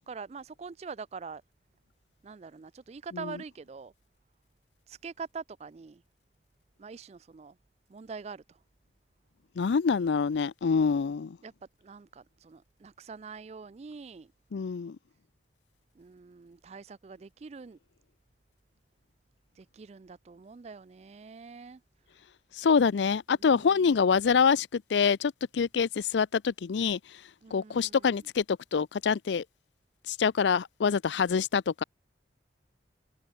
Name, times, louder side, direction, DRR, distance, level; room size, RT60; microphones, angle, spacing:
voice 1, 0.1-1.4 2.2-3.9 4.9-6.0 6.8-7.5 7.9-8.4 11.4-11.5 11.8-14.3 16.0-17.8 19.6-21.8 23.5-23.7 27.4-28.0, right 5 dB, 35° right, 0.4 m, -44 dB
voice 2, 9.6-11.4 14.5-15.0 22.6-27.0 27.5-29.4 30.1-31.8, left 6 dB, 90° left, 0.4 m, -26 dB
head